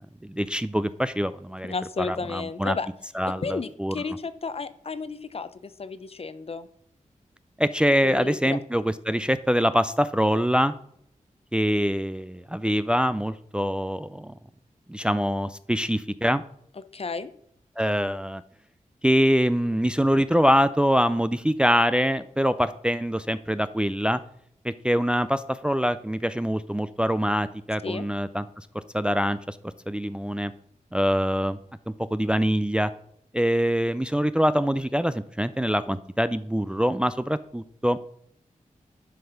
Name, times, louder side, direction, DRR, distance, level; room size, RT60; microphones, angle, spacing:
voice 1, 0.0-2.8 3.1-4.0 7.6-10.7 11.5-14.3 14.9-16.4 17.8-18.4 19.0-24.2 24.6-28.4 28.9-29.6 29.9-30.5 30.9-31.6 32.1-32.9 33.3-38.0, equal, 5° right, 12 dB, 0.4 m, -24 dB
voice 2, 1.6-2.9 3.4-6.7 8.0-8.6 16.9-17.3 27.8-28.1, left 4 dB, 45° left, 13 dB, 0.7 m, -33 dB
11.5 x 5.3 x 5.8 m, 0.70 s
wide cardioid pair, 115°, 13 cm